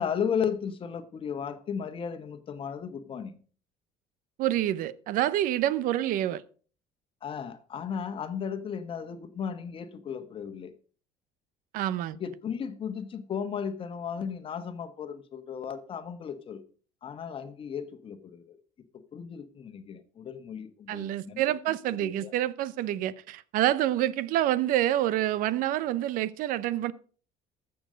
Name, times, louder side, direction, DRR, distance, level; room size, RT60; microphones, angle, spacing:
voice 1, 0.0-3.4 7.2-10.7 12.1-16.6 17.0-18.6 18.9-21.4 22.0-22.3, left 7 dB, 35° left, 1.3 m, -35 dB
voice 2, 4.4-6.4 11.7-12.2 20.9-26.9, right 13 dB, 65° right, 0.7 m, -27 dB
14.0 x 7.1 x 5.1 m
cardioid pair, 135°, 15 cm